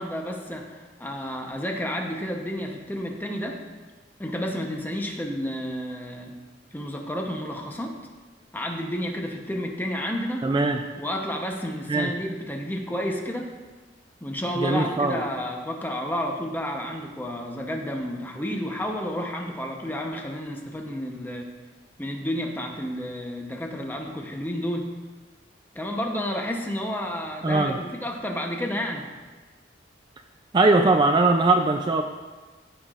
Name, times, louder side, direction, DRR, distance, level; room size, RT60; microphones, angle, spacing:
voice 1, 0.0-3.6 4.2-6.3 6.7-8.0 8.5-10.5 11.0-13.5 14.2-21.5 22.0-25.0 25.7-29.1, equal, 10° left, 2 dB, 0.8 m, -31 dB
voice 2, 10.4-10.8 11.9-12.1 14.5-15.2 27.4-27.8 30.5-32.0, right 2 dB, 25° right, 4 dB, 0.3 m, -20 dB
14.5 x 5.8 x 2.5 m, 1.3 s
head